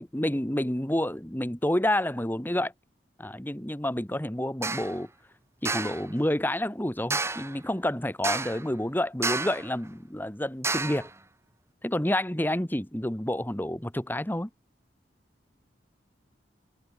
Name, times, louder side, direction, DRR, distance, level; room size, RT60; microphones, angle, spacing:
voice 1, 0.0-2.7 3.2-5.1 5.6-11.1 11.8-14.5, left 1 dB, 10° left, 1.5 m, -29 dB
sound 1, 4.6-4.9 5.7-6.0 7.1-7.6 8.2-8.7 9.2-9.7 10.6-11.1, right 3 dB, 15° right, 2.6 m, -30 dB
head